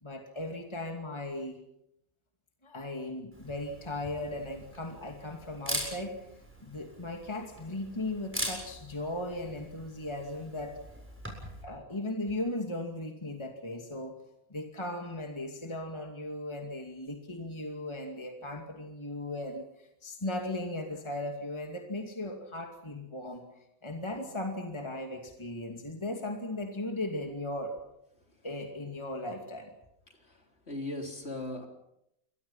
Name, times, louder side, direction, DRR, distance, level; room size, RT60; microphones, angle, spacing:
voice 1, 0.0-1.6 2.6-6.2 6.6-10.8 11.6-14.2 14.5-23.5 23.8-27.8 28.4-29.7, left 1 dB, 20° left, 3 dB, 2.5 m, -37 dB
Camera, 3.3-11.6, right 1 dB, 10° right, 7.3 m, -42 dB
voice 2, 30.2-31.7, left 2 dB, 45° left, 3 dB, 4.0 m, -38 dB
28.5 x 23.5 x 5.7 m, 0.80 s
omnidirectional pair, 1.5 m